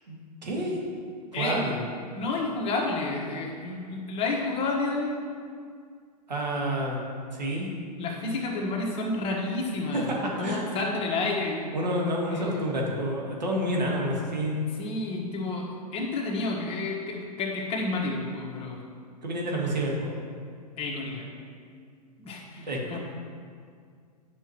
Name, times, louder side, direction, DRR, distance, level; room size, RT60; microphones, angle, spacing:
voice 1, 0.1-0.8 1.3-1.8 6.3-7.0 7.3-7.7 10.4-10.8 11.7-14.6 19.2-20.2 22.7-23.0, right 1 dB, 85° right, -2 dB, 1.7 m, -29 dB
voice 2, 2.2-5.1 8.0-12.7 14.7-18.8 20.8-21.3 22.2-23.0, left 3 dB, 25° left, -2 dB, 1.4 m, -30 dB
9.8 x 6.2 x 3.1 m, 2.1 s
hypercardioid pair, 110°, 21 cm